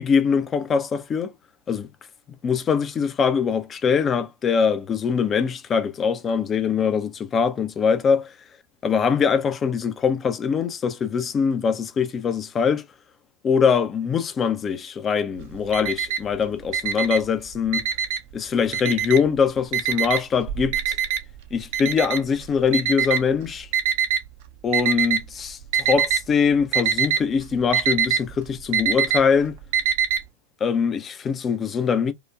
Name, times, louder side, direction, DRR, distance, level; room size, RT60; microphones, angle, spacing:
voice 1, 0.0-1.3 1.7-1.9 2.4-8.2 8.8-12.8 13.4-17.9 18.3-21.0 21.5-23.7 24.6-29.5 30.6-32.1, left 6 dB, 25° left, 0.5 m, -22 dB
Alarm, 15.4-16.4 16.7-18.3 18.7-19.4 19.7-24.2 24.7-25.3 25.6-26.3 26.5-30.2, right 8 dB, 50° right, 0.5 m, -23 dB
4.8 x 2.2 x 2.3 m
figure-of-eight pair, 90°, 0 cm